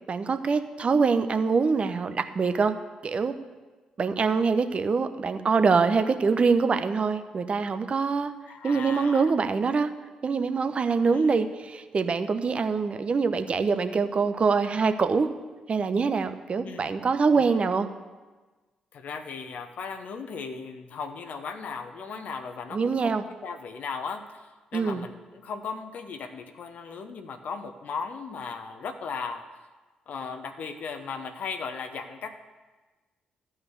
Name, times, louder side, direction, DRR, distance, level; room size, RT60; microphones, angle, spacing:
voice 1, 0.1-2.7 3.0-3.4 4.0-8.3 8.6-9.9 10.2-15.3 15.7-17.9 22.7-23.2 24.7-25.0, right 5 dB, 40° right, 10 dB, 0.9 m, -24 dB
voice 2, 8.5-9.3 11.1-11.3 16.6-16.9 17.3-17.4 18.9-29.5 30.1-32.3, left 5 dB, 60° left, 6 dB, 0.9 m, -37 dB
12.5 x 5.7 x 8.0 m, 1.3 s
hypercardioid pair, 40°, 3 cm